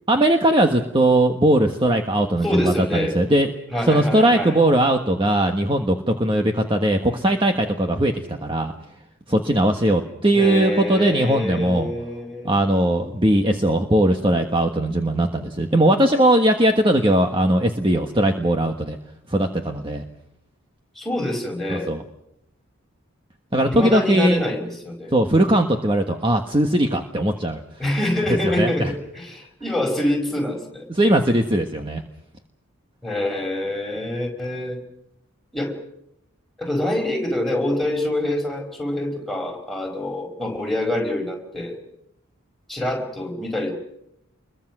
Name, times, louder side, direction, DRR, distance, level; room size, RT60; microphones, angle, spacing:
voice 1, 0.1-3.5 3.9-8.7 9.3-11.9 12.4-19.0 19.3-20.0 21.7-22.0 23.5-24.4 25.1-27.6 28.3-28.9 30.9-32.0, right 1 dB, 25° right, 4 dB, 1.4 m, -19 dB
voice 2, 2.4-3.2 3.7-4.6 10.3-12.5 20.9-21.9 23.6-25.1 27.8-30.9 33.0-34.8 35.5-35.7 36.6-41.8 42.7-43.7, left 1 dB, ahead, 1 dB, 5.0 m, -26 dB
27.5 x 22.5 x 6.2 m, 0.81 s
head